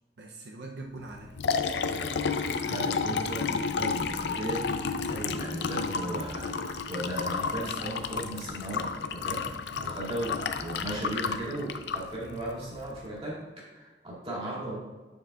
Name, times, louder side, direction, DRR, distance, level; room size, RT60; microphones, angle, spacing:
voice 1, 0.2-1.4 2.5-3.1 9.2-9.9, right 2 dB, 70° right, 0 dB, 0.6 m, -44 dB
Liquid, 1.1-13.0, left 5 dB, 75° left, 0.5 m, -32 dB
voice 2, 2.6-14.8, right 1 dB, 30° right, -6 dB, 2.3 m, -36 dB
8.9 x 7.1 x 2.4 m, 1.3 s
head